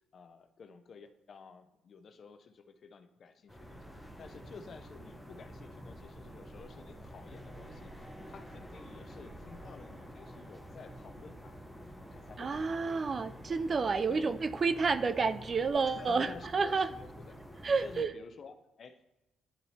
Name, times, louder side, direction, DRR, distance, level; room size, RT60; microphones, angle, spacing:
voice 1, 0.1-11.6 12.1-13.1 14.1-14.3 15.8-17.4 17.8-19.0, left 5 dB, 50° left, 9 dB, 0.5 m, -52 dB
sound 1, 3.5-18.1, equal, ahead, 0.8 m, -49 dB
voice 2, 12.4-16.9 17.6-18.1, right 4 dB, 40° right, 12 dB, 0.3 m, -30 dB
11.0 x 4.2 x 2.7 m, 0.95 s
cardioid pair, 90°, 0 cm